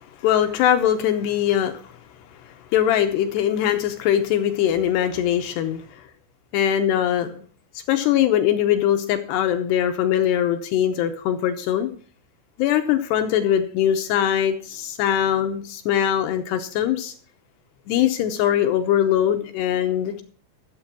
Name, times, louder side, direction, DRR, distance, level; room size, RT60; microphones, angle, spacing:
voice 1, 0.2-1.9 2.5-6.0 6.5-7.5 7.9-11.9 12.6-17.1 17.9-20.2, left 10 dB, 75° left, 7 dB, 2.6 m, -21 dB
13.0 x 7.5 x 6.0 m, 0.42 s
omnidirectional pair, 5.7 m